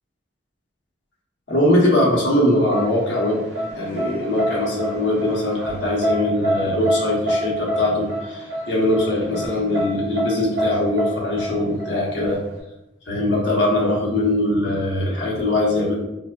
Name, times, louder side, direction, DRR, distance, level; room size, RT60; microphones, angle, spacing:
voice 1, 1.5-3.5 3.7-12.4 13.1-15.9, left 1 dB, 90° left, -4 dB, 0.8 m, -21 dB
sound 1, 2.7-12.6, right 1 dB, 70° right, 0.7 m, -26 dB
3.2 x 2.0 x 2.2 m, 0.92 s
head